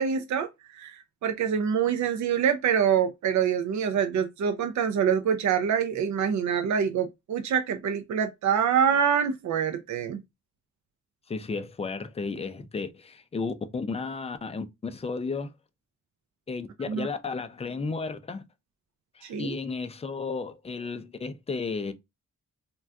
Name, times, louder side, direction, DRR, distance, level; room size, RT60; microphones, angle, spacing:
voice 1, 0.0-10.2 16.9-17.1 19.2-19.5, right 7 dB, 70° right, 0.5 m, -25 dB
voice 2, 11.3-15.5 16.5-18.4 19.1-21.9, left 4 dB, 20° left, 0.3 m, -33 dB
2.5 x 2.2 x 3.3 m
wide cardioid pair, 150°, 30 cm